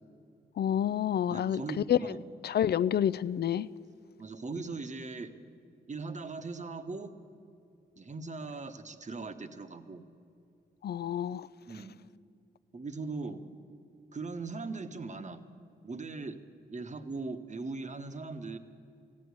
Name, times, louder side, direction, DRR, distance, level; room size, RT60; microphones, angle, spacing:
voice 1, 0.6-1.6 1.9-2.0 2.4-3.7 10.8-11.5, left 10 dB, 60° left, 0.4 m, -28 dB
voice 2, 1.3-2.2 4.2-5.3 5.9-7.1 8.0-10.0 11.7-11.9 12.7-13.5 14.1-15.4 15.8-16.4 16.7-18.6, right 3 dB, 40° right, 1.1 m, -39 dB
14.5 x 8.6 x 9.5 m
cardioid pair, 50°, 19 cm